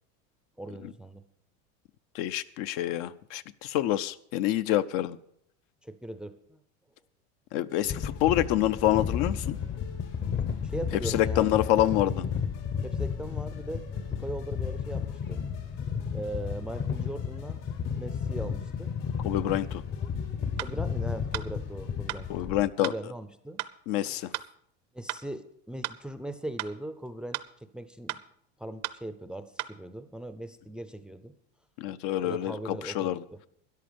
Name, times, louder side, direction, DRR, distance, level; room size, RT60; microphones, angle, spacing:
voice 1, 0.6-1.2 5.8-6.6 10.6-12.0 12.8-15.4 16.1-17.6 17.9-18.9 20.6-22.3 22.8-23.6 24.0-24.3 24.9-28.2 28.6-31.3 32.2-33.4, right 1 dB, 5° right, 11 dB, 0.5 m, -39 dB
voice 2, 2.1-5.2 7.5-9.6 11.1-12.2 19.2-19.8 22.3-22.9 23.9-24.3 31.8-33.2, left 13 dB, 60° left, 13 dB, 0.7 m, -27 dB
sound 1, 7.7-22.5, left 6 dB, 80° left, 3.8 m, -54 dB
sound 2, 7.8-22.7, left 7 dB, 30° left, 0.8 m, -33 dB
sound 3, 20.6-20.7 21.3-21.5 22.1-22.2 22.8-23.0 23.6-23.7 24.3-24.5 25.1-25.2 25.8-26.0 26.6-26.7 27.3-27.5 28.1-28.2 28.8-29.0 29.6-29.7, right 17 dB, 65° right, 0.7 m, -34 dB
13.0 x 10.5 x 5.1 m, 0.68 s
supercardioid pair, 135°, 35 cm